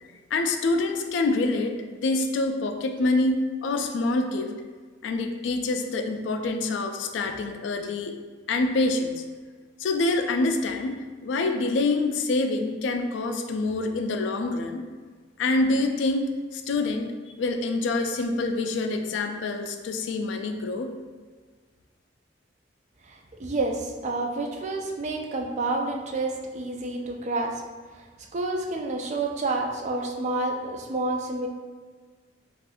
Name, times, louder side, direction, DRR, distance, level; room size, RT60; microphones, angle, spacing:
voice 1, 0.3-1.7 2.0-4.5 5.0-8.2 8.5-9.2 9.8-14.8 15.4-17.1 17.4-20.9, left 2 dB, 70° left, 5 dB, 0.3 m, -26 dB
voice 2, 23.0-27.6 27.9-28.1 28.3-31.5, right 2 dB, 40° right, 2 dB, 0.3 m, -29 dB
3.5 x 2.4 x 2.5 m, 1.5 s
head